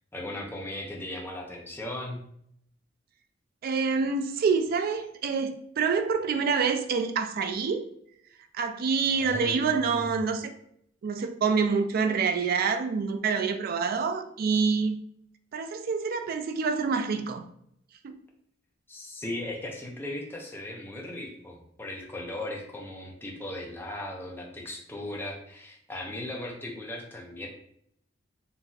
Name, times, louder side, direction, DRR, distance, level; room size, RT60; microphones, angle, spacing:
voice 1, 0.1-2.2 9.2-10.1 18.9-27.5, left 1 dB, 10° left, -1 dB, 0.5 m, -37 dB
voice 2, 3.6-7.9 8.5-10.5 11.0-15.0 15.5-17.4 18.0-18.2, right 5 dB, 50° right, 7 dB, 0.3 m, -27 dB
3.9 x 2.6 x 2.4 m, 0.70 s
head